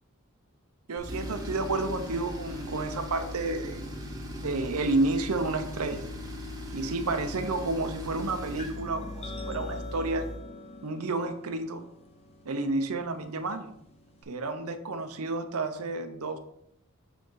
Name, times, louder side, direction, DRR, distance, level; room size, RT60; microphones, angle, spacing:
voice 1, 0.9-3.9 4.4-6.1 6.7-10.3 10.8-11.8 12.5-13.7 14.3-16.4, right 2 dB, 80° right, 8 dB, 0.7 m, -30 dB
Tools, 1.0-10.4, left 1 dB, 15° right, 0.8 m, -39 dB
sound 1, 8.6-14.2, left 1 dB, 25° left, 0.6 m, -45 dB
6.2 x 5.2 x 3.8 m, 0.76 s
head